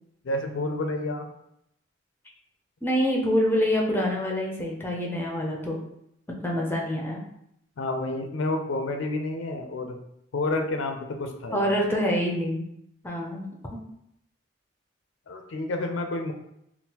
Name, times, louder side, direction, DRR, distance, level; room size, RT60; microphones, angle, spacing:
voice 1, 0.2-1.3 7.8-10.0 10.3-11.8 15.3-16.3, left 2 dB, 75° left, 5 dB, 0.4 m, -29 dB
voice 2, 2.8-5.8 6.4-7.2 11.5-12.7 13.0-13.5, equal, 10° left, -1 dB, 0.4 m, -26 dB
3.6 x 2.3 x 2.8 m, 0.77 s
head